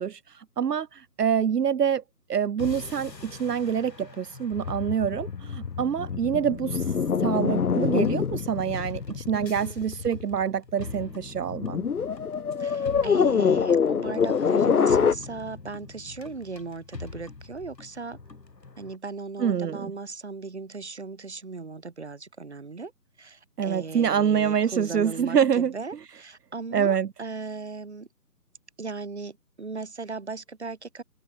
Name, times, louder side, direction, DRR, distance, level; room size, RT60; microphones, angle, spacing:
voice 1, 0.0-2.0 2.3-6.8 7.2-11.9 19.4-19.9 23.6-25.7 26.7-27.1, right 8 dB, 75° right, 0.8 m, -26 dB
sound 1, 2.6-19.0, left 3 dB, 90° left, 5.6 m, -43 dB
sound 2, 4.5-10.4 11.4-15.1, left 6 dB, 65° left, 0.9 m, -25 dB
voice 2, 9.3-9.9 12.6-18.2 18.8-22.9 23.2-28.1 28.8-31.0, right 4 dB, 40° right, 1.6 m, -37 dB
hypercardioid pair, 180°, 48 cm